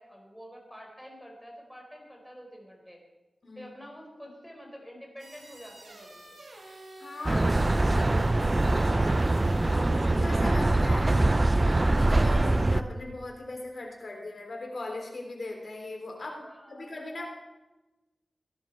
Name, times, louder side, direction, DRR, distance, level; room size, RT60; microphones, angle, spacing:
voice 1, 0.0-3.0 3.5-6.4 7.3-8.9 16.4-17.1, equal, ahead, 0 dB, 4.6 m, -47 dB
sound 1, 5.2-10.0, right 1 dB, 70° right, 3.7 m, -47 dB
voice 2, 6.6-7.6 9.4-17.3, left 2 dB, 60° left, 1 dB, 3.6 m, -40 dB
sound 2, 7.2-12.8, right 2 dB, 30° right, 0.6 m, -23 dB
18.0 x 11.0 x 4.6 m, 1.1 s
cardioid pair, 60°, 0 cm